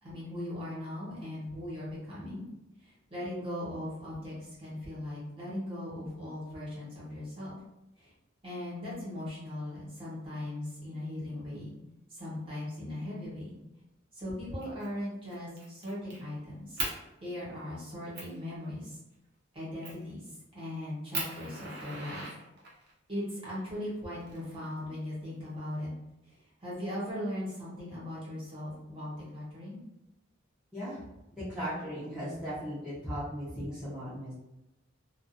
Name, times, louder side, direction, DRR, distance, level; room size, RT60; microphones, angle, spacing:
voice 1, 0.0-2.4 2.8-7.6 8.0-8.1 8.4-11.7 12.1-13.6 14.1-16.9 17.2-19.0 19.5-20.3 20.5-22.3 23.1-25.9 26.2-29.8, left 1 dB, 25° right, -8 dB, 1.1 m, -39 dB
Fire, 14.6-14.9 15.3-16.2 16.8-17.0 17.6-17.7 18.1-18.4 19.8-20.1 20.6-20.7 21.1-22.9 23.9-24.9, right 3 dB, 55° right, 0.7 m, -38 dB
voice 2, 31.3-34.3, equal, 5° right, -13 dB, 0.8 m, -37 dB
2.5 x 2.4 x 2.5 m, 0.92 s
head